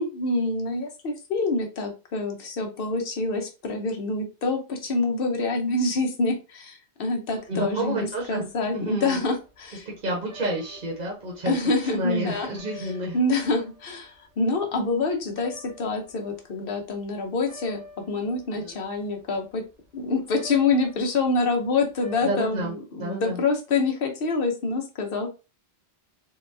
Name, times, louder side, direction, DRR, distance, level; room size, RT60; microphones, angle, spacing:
voice 1, 0.0-9.9 11.5-12.5 12.8-12.9 13.1-19.6 19.9-25.3, left 3 dB, 60° left, 3 dB, 1.0 m, -26 dB
sound 1, 7.3-17.1 17.3-22.7, left 1 dB, 75° right, 1.2 m, -48 dB
voice 2, 7.5-8.5 8.7-9.2 9.8-11.6 11.8-13.2 18.5-18.8 22.2-23.4, right 1 dB, 50° right, -2 dB, 1.1 m, -30 dB
3.9 x 2.2 x 2.6 m, 0.30 s
omnidirectional pair, 1.1 m